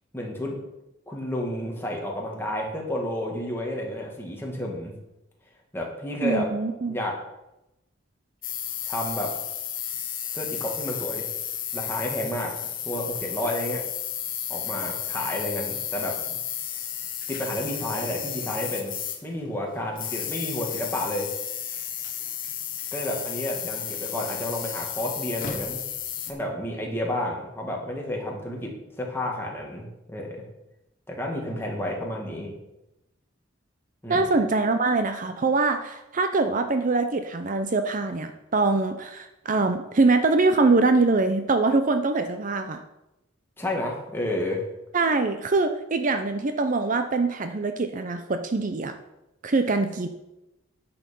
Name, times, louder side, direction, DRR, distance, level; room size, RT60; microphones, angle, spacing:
voice 1, 0.1-0.6 1.1-4.9 5.7-6.5 6.8-7.2 8.9-9.3 10.3-11.3 11.7-12.5 12.8-13.8 14.5-16.4 17.3-18.9 19.2-21.3 22.9-25.9 26.3-30.5 31.1-32.6 34.0-34.3 43.6-44.6, left 1 dB, 10° left, -1 dB, 2.0 m, -31 dB
voice 2, 6.2-7.0 34.1-42.8 44.9-48.9 49.4-50.1, right 3 dB, 40° right, 8 dB, 0.6 m, -23 dB
sound 1, 8.4-19.5 19.9-26.3, left 10 dB, 45° left, 1.2 m, -33 dB
10.0 x 6.9 x 5.3 m, 0.92 s
head